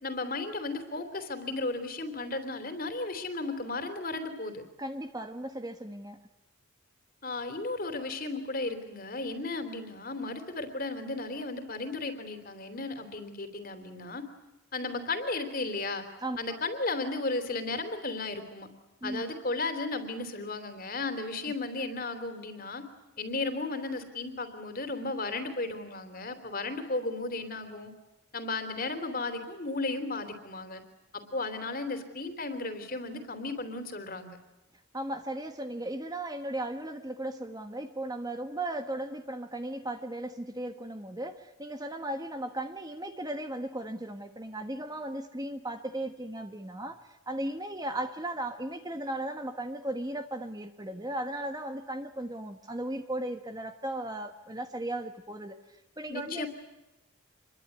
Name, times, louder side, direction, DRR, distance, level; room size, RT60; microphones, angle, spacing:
voice 1, 0.0-4.6 7.2-14.3 14.7-16.1 16.4-18.7 19.0-22.8 23.2-27.9 28.3-30.8 31.1-34.4 56.1-56.5, left 3 dB, 40° left, 8 dB, 3.4 m, -34 dB
voice 2, 4.8-6.2 16.2-16.4 19.0-19.2 34.9-56.5, right 1 dB, 15° right, 7 dB, 1.4 m, -36 dB
27.0 x 22.5 x 9.5 m, 0.97 s
head